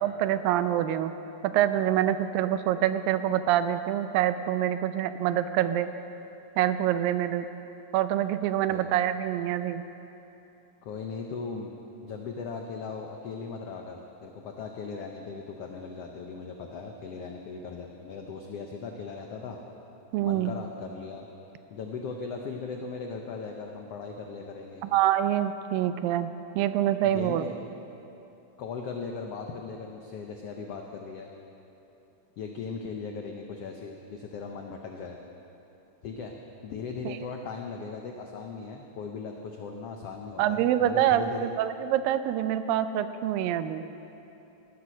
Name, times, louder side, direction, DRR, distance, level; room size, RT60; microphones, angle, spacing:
voice 1, 0.0-1.1 1.4-5.9 6.6-7.5 7.9-9.8 20.1-20.5 24.9-27.4 37.1-37.2 40.4-43.8, right 11 dB, 85° right, 11 dB, 2.4 m, -26 dB
voice 2, 10.8-11.7 12.0-19.6 20.2-21.3 21.7-24.8 27.0-27.6 28.6-31.3 32.4-35.2 36.0-36.3 36.6-41.5, left 5 dB, 85° left, 2 dB, 1.3 m, -38 dB
17.0 x 11.5 x 6.3 m, 2.9 s
omnidirectional pair, 4.0 m